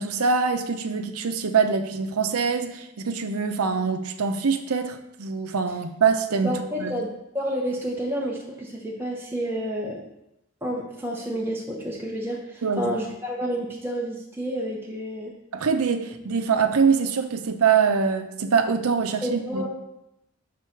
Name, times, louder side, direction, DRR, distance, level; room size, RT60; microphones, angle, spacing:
voice 1, 0.0-6.5 6.8-6.9 12.6-12.9 15.5-19.6, right 5 dB, 90° right, 8 dB, 0.6 m, -24 dB
voice 2, 6.4-10.0 10.6-15.4 19.2-19.7, equal, 10° right, -3 dB, 0.7 m, -30 dB
4.6 x 4.2 x 5.7 m, 0.85 s
head